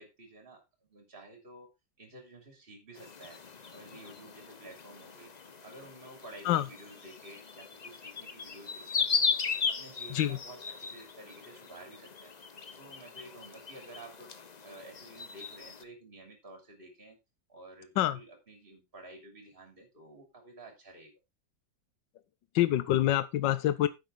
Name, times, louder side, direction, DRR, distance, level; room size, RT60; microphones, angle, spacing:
voice 1, 0.0-1.7 2.0-3.4 3.7-5.3 5.6-12.3 12.8-17.2 17.5-21.1, right 2 dB, 30° right, 3.4 m, -52 dB
sound 1, 3.0-15.8, left 5 dB, 45° left, 0.5 m, -37 dB
voice 2, 22.5-23.9, left 13 dB, 75° left, 1.5 m, -26 dB
10.0 x 8.1 x 3.8 m
omnidirectional pair, 2.0 m